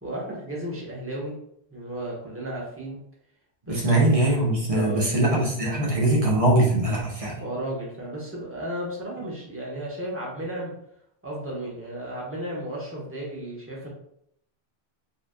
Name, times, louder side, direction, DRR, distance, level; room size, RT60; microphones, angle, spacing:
voice 1, 0.0-1.4 1.7-3.0 3.7-3.9 4.7-5.1 7.4-10.7 11.2-13.9, right 1 dB, 10° right, -5 dB, 1.4 m, -34 dB
voice 2, 3.7-7.4, right 1 dB, 35° right, -3 dB, 1.2 m, -22 dB
4.7 x 3.5 x 2.5 m, 0.72 s
omnidirectional pair, 1.1 m